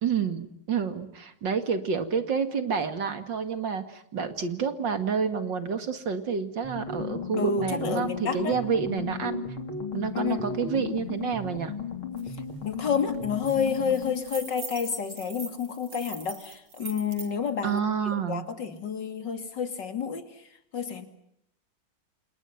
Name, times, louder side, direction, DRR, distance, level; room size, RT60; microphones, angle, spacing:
voice 1, 0.0-9.4 9.9-11.7 17.6-18.4, right 6 dB, 60° right, 9 dB, 2.7 m, -29 dB
sound 1, 6.6-14.3, left 5 dB, 85° left, 4.4 m, -35 dB
voice 2, 7.4-8.6 10.1-10.5 12.6-17.8 18.1-20.3 20.7-21.1, left 6 dB, 55° left, 8 dB, 3.1 m, -29 dB
sound 2, 12.2-12.3 12.6-12.8 13.1-17.3, right 5 dB, 85° right, 3.7 m, -42 dB
29.0 x 28.0 x 5.9 m, 0.76 s
omnidirectional pair, 2.2 m